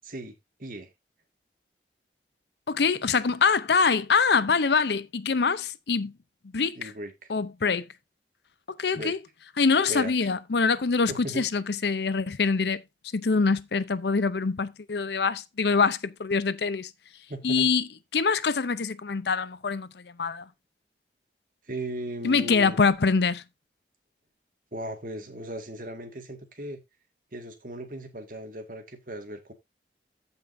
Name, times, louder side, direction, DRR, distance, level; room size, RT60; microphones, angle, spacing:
voice 1, 0.0-0.3 0.6-0.9 6.7-7.3 8.9-9.2 9.9-10.1 11.1-11.4 17.3-17.7 21.7-22.8 24.7-26.8 27.3-29.5, right 1 dB, 50° right, 2.0 m, -37 dB
voice 2, 2.7-6.1 6.5-6.9 7.3-7.9 8.7-9.2 9.6-12.8 13.1-16.9 17.4-17.9 18.1-20.5 22.2-23.4, left 5 dB, 70° left, 0.6 m, -24 dB
15.0 x 5.4 x 2.7 m
head